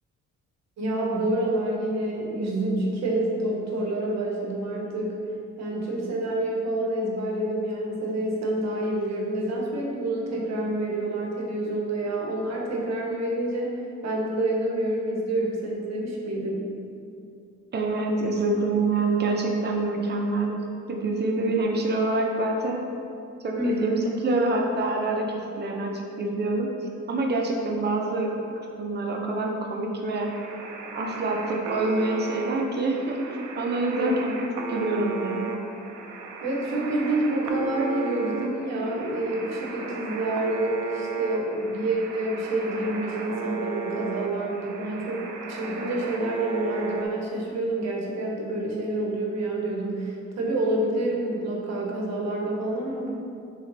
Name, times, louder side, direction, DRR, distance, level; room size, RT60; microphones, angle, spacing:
voice 1, 0.8-5.2 5.6-13.8 14.0-16.7 23.6-24.0 34.0-34.1 36.4-53.1, right 1 dB, 60° right, -1 dB, 0.8 m, -28 dB
voice 2, 17.7-20.6 20.9-22.8 23.4-24.0 24.2-26.7 27.1-28.5 28.8-30.3 30.9-34.4 34.7-35.6, right 2 dB, 35° right, 0 dB, 0.6 m, -26 dB
sound 1, 30.1-47.1, right 5 dB, 85° right, 0.5 m, -35 dB
3.1 x 3.0 x 3.8 m, 2.5 s
cardioid pair, 90°, 30 cm